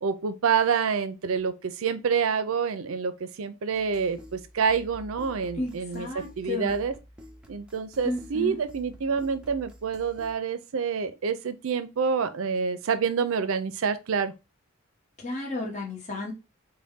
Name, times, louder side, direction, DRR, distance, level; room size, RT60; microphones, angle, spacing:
voice 1, 0.0-7.0 7.5-14.3, right 6 dB, 70° right, 0.5 m, -27 dB
sound 1, 3.7-10.3, equal, 5° right, 0.5 m, -49 dB
voice 2, 5.6-6.7 8.0-8.6 15.2-16.3, left 2 dB, 35° left, 0.9 m, -33 dB
4.0 x 2.2 x 3.5 m
head